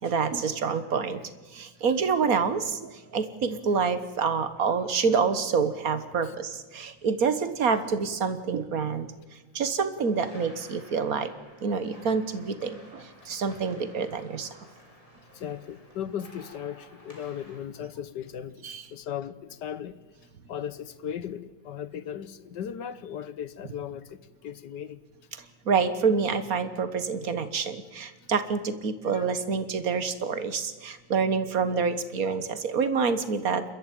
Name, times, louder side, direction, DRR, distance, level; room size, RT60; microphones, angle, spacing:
voice 1, 0.0-1.2 1.5-9.1 9.5-11.3 11.6-14.6 18.6-18.8 25.6-33.6, right 5 dB, 50° right, 1.6 m, -27 dB
sound 1, 10.0-17.6, equal, 15° left, 4.4 m, -53 dB
voice 2, 15.3-20.0 20.5-25.0 29.1-29.3, left 9 dB, 65° left, 1.4 m, -37 dB
29.0 x 13.5 x 9.1 m
omnidirectional pair, 2.2 m